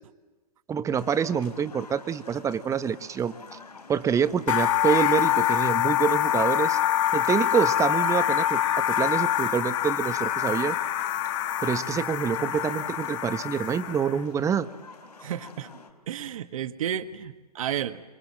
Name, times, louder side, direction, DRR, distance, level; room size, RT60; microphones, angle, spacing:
voice 1, 0.7-3.3 3.9-6.8 7.1-10.8 11.6-14.7, right 7 dB, 15° right, 12 dB, 1.2 m, -26 dB
sound 1, 1.0-15.9, left 4 dB, 75° left, 4.0 m, -48 dB
sound 2, 4.5-14.2, left 13 dB, 55° left, 1.7 m, -25 dB
voice 2, 15.2-15.7 16.1-18.0, right 10 dB, 60° right, 10 dB, 1.7 m, -32 dB
26.5 x 24.5 x 7.6 m, 1.2 s
figure-of-eight pair, 115°, 20 cm